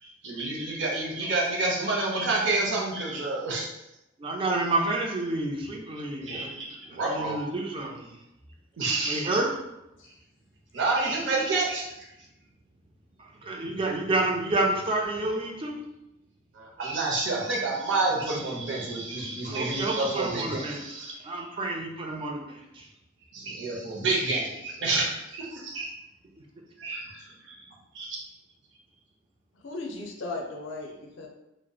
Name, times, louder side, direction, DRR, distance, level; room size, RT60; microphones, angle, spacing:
voice 1, 0.0-3.7 6.2-7.4 8.8-9.3 10.7-12.0 16.5-21.5 23.3-25.1 25.3-25.9 26.8-27.6 27.9-28.2, right 3 dB, 70° right, -2 dB, 0.6 m, -29 dB
voice 2, 4.2-6.6 6.9-8.1 9.0-9.5 13.4-15.8 19.5-20.8 21.2-22.9, right 2 dB, 25° right, 0 dB, 0.3 m, -29 dB
voice 3, 29.5-31.3, left 2 dB, 75° left, 2 dB, 0.4 m, -37 dB
2.7 x 2.0 x 2.2 m, 0.90 s
head